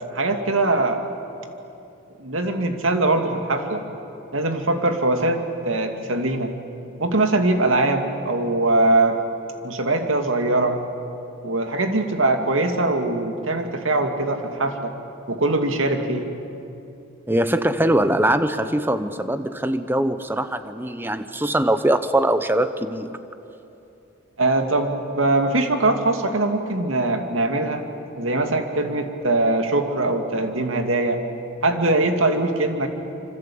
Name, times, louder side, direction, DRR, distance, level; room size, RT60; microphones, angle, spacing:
voice 1, 0.1-1.0 2.2-3.8 4.3-6.5 7.0-9.2 9.6-10.8 11.4-14.9 15.3-16.3 24.4-27.8 28.1-31.2 31.6-32.9, right 2 dB, 85° right, 5 dB, 2.5 m, -22 dB
voice 2, 17.3-23.2, right 1 dB, 10° right, 11 dB, 0.9 m, -22 dB
26.5 x 25.5 x 8.7 m, 2.9 s
head